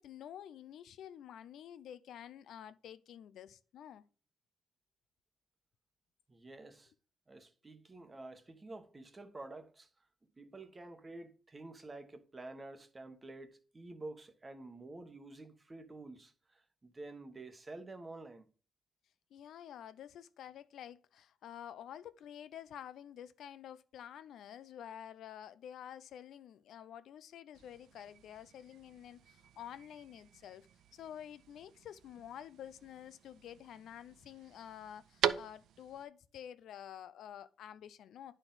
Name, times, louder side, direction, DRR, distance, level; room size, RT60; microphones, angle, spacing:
voice 1, 0.0-4.0 19.3-30.7 30.9-38.4, left 10 dB, 75° left, 0.5 m, -50 dB
voice 2, 6.3-6.9 7.3-9.9 10.4-18.5, right 2 dB, 25° right, 1.1 m, -49 dB
sound 1, 27.5-36.0, right 9 dB, 75° right, 0.5 m, -43 dB
9.8 x 4.4 x 3.8 m
cardioid pair, 90°, 0 cm